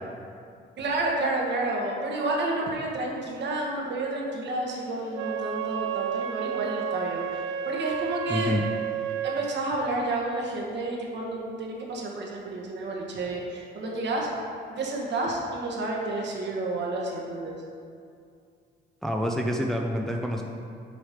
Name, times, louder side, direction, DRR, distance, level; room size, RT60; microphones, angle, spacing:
voice 1, 0.8-8.6 9.2-14.3 14.7-17.6, right 2 dB, 60° right, -2 dB, 1.3 m, -30 dB
Wind instrument woodwind instrument, 5.1-9.6, right 8 dB, 85° right, 0.6 m, -31 dB
voice 2, 8.3-8.6 19.0-20.4, equal, ahead, 1 dB, 0.5 m, -27 dB
7.9 x 3.1 x 5.0 m, 2.3 s
cardioid pair, 90°, 20 cm